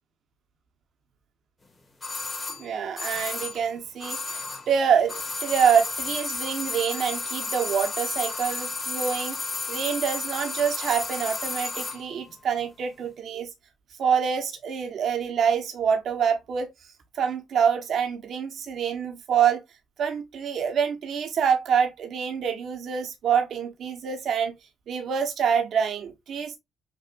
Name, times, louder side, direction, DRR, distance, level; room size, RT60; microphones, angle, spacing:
sound 1, 2.0-4.8 5.0-12.0 12.3-12.4, left 3 dB, 25° left, 1.7 m, -32 dB
voice 1, 2.6-9.4 9.7-13.5 14.0-16.7 17.1-19.6 20.0-24.5 24.9-26.6, right 7 dB, 65° right, 1.3 m, -26 dB
6.5 x 2.7 x 2.6 m
cardioid pair, 90°, 0 cm